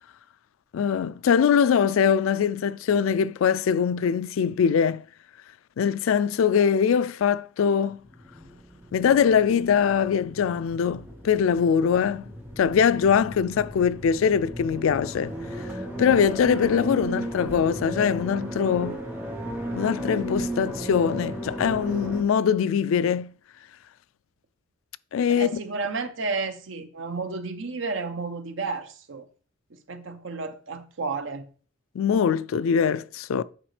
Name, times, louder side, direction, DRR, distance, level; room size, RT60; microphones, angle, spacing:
voice 1, 0.7-5.0 5.8-8.0 8.9-15.4 16.0-19.0 19.7-23.3 25.1-25.6 32.0-33.4, left 7 dB, 85° left, 0.3 m, -22 dB
sound 1, 8.0-22.2, equal, 10° right, 1.2 m, -35 dB
voice 2, 25.3-29.3 29.9-31.4, right 4 dB, 70° right, 0.7 m, -32 dB
8.9 x 4.9 x 3.3 m
head